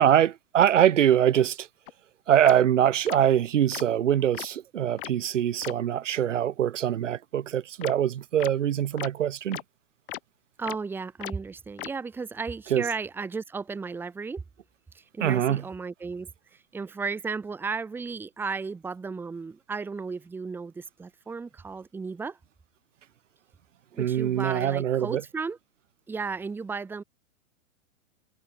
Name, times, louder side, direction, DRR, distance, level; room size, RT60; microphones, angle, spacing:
voice 1, 0.0-1.7 2.3-9.6 12.7-12.8 15.2-15.6 24.0-25.2, right 10 dB, 65° right, 5.5 m, -23 dB
sound 1, 1.9-2.0 2.4-2.5 3.1-3.2 3.7-3.8 4.3-4.5 5.0-5.1 5.6-5.7 7.8-7.9 8.4-8.5 9.0-9.1 9.5-9.6 10.1-10.2 10.7-10.8 11.2-11.3 11.8-11.9, left 14 dB, 40° left, 3.5 m, -36 dB
voice 2, 10.6-14.4 14.9-22.4 23.9-25.6 26.1-27.0, right 4 dB, 5° right, 2.9 m, -34 dB
hypercardioid pair, 175°, 40 cm